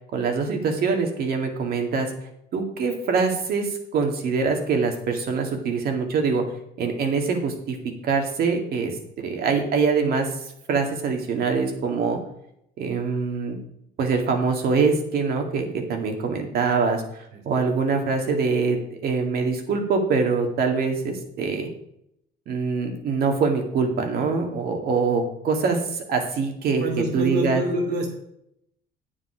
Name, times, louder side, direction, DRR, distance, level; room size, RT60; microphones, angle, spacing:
voice 1, 0.1-2.1 2.5-6.4 6.8-7.8 8.0-8.9 9.2-12.2 12.8-13.6 14.0-17.0 17.5-21.7 22.5-26.8 27.1-27.6, right 4 dB, 65° right, 4 dB, 2.1 m, -24 dB
voice 2, 26.8-28.1, right 1 dB, 85° right, 2 dB, 2.8 m, -26 dB
9.5 x 7.4 x 5.0 m, 0.75 s
cardioid pair, 110°, 17 cm